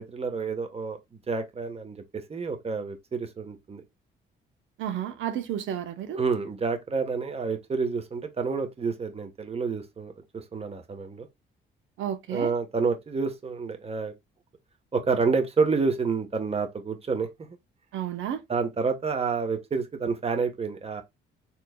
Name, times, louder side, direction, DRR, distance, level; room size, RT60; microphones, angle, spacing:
voice 1, 0.0-3.8 6.1-11.3 12.3-14.1 14.9-17.6 18.5-21.0, right 4 dB, 30° right, 1.2 m, -29 dB
voice 2, 4.8-6.2 12.0-12.5 17.9-18.4, right 10 dB, 80° right, 0.8 m, -31 dB
4.4 x 4.0 x 2.2 m
cardioid pair, 90°, 20 cm